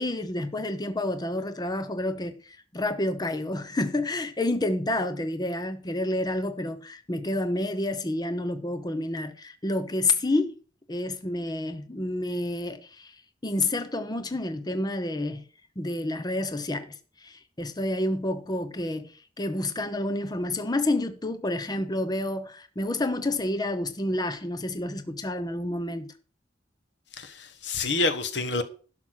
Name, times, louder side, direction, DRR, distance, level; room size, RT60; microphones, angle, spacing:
voice 1, 0.0-10.6 10.9-13.2 13.4-15.5 15.8-26.1, left 1 dB, 25° left, 0.8 m, -29 dB
voice 2, 27.1-28.6, left 3 dB, 80° left, 1.4 m, -28 dB
11.5 x 5.9 x 6.3 m
head